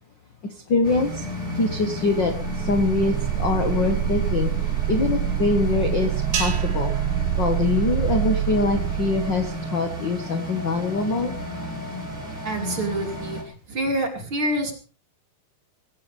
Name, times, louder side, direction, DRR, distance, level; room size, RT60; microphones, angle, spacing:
voice 1, 0.7-1.2 1.6-4.5 4.9-6.9 7.4-11.3, left 3 dB, 50° left, 6 dB, 1.3 m, -24 dB
sound 1, 0.8-13.4, equal, 20° right, 4.4 m, -33 dB
sound 2, 2.1-9.7, right 13 dB, 70° right, 2.5 m, -26 dB
sound 3, 6.3-8.8, right 6 dB, 85° right, 4.5 m, -34 dB
voice 2, 12.4-13.4 13.7-14.7, right 1 dB, 35° right, 3 dB, 3.3 m, -26 dB
19.0 x 17.5 x 3.5 m, 0.36 s
omnidirectional pair, 4.3 m